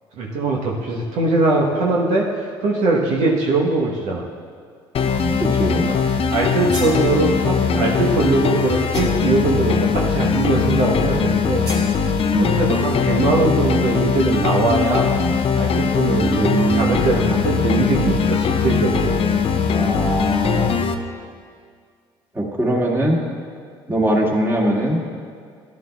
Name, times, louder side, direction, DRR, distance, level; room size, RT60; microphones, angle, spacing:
voice 1, 0.2-4.2 5.9-6.0 6.3-11.7 12.4-15.1 15.6-19.1 22.7-23.0, right 3 dB, 65° right, -2 dB, 1.1 m, -21 dB
sound 1, 4.9-20.9, left 5 dB, 45° left, 0.7 m, -20 dB
voice 2, 5.4-5.9 12.3-12.6 16.1-17.1 19.7-20.9 22.3-23.2 23.9-25.0, right 1 dB, 15° right, -3 dB, 2.1 m, -21 dB
sound 2, 6.4-7.0 8.9-9.4 11.6-11.9, right 1 dB, 85° right, 2.1 m, -34 dB
13.0 x 10.5 x 2.4 m, 2.1 s
hypercardioid pair, 60°, 13 cm